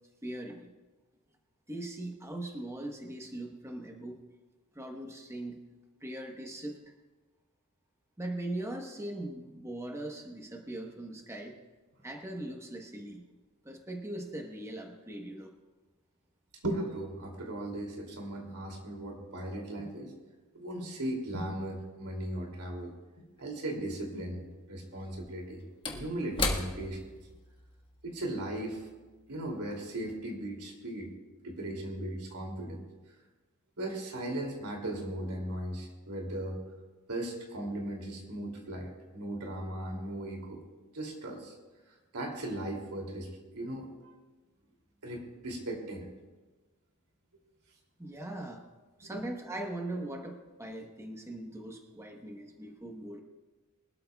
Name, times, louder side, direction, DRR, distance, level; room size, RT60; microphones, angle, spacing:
voice 1, 0.2-0.7 1.7-4.2 4.7-5.6 6.0-6.9 8.2-11.6 12.0-13.3 13.6-15.5 48.0-48.6 49.0-53.2, right 1 dB, 15° right, 2 dB, 1.1 m, -40 dB
voice 2, 16.6-20.1 20.5-22.9 23.4-25.6 25.9-27.0 28.0-28.9 29.3-31.1 31.4-32.8 33.8-36.6 37.1-40.6 40.9-41.5 42.1-43.9 45.0-46.1 49.0-49.2, right 1 dB, 90° right, 1 dB, 2.7 m, -37 dB
Slam / Wood, 23.4-23.5 24.9-29.6 30.0-30.1, left 3 dB, 25° left, 1.4 m, -38 dB
23.5 x 12.5 x 2.3 m, 1.2 s
head